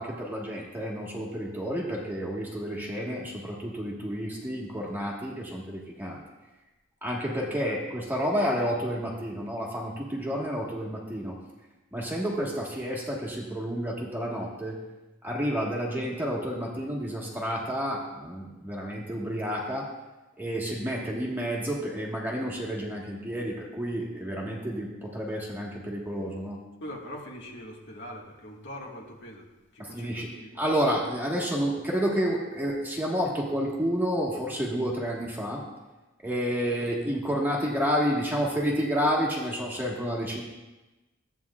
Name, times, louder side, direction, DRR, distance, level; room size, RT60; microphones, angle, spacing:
voice 1, 0.0-6.2 7.0-11.4 11.9-14.8 15.2-19.9 20.4-26.6 29.8-30.3 30.6-35.6 36.2-40.4, equal, 10° right, -3 dB, 1.5 m, -30 dB
voice 2, 26.8-29.5 29.7-30.5, equal, 60° left, -2 dB, 1.7 m, -42 dB
14.0 x 8.7 x 2.4 m, 1.1 s
head